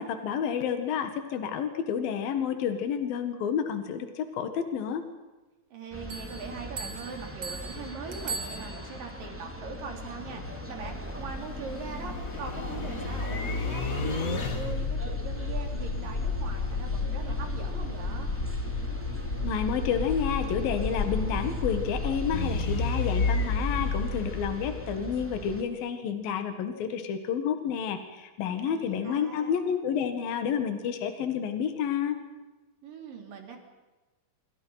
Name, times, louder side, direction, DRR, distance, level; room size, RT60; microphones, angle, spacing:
voice 1, 0.0-5.0 19.4-32.2, left 7 dB, 75° left, 8 dB, 3.6 m, -30 dB
voice 2, 5.7-18.3 28.6-29.6 32.8-33.6, right 5 dB, 65° right, 3 dB, 5.3 m, -41 dB
sound 1, 5.9-25.6, equal, 5° right, 2.5 m, -41 dB
Bell, 6.1-9.2, right 4 dB, 40° right, 1.9 m, -40 dB
sound 2, 9.3-25.3, left 3 dB, 35° left, 1.4 m, -31 dB
27.5 x 25.0 x 5.9 m, 1.2 s
omnidirectional pair, 4.2 m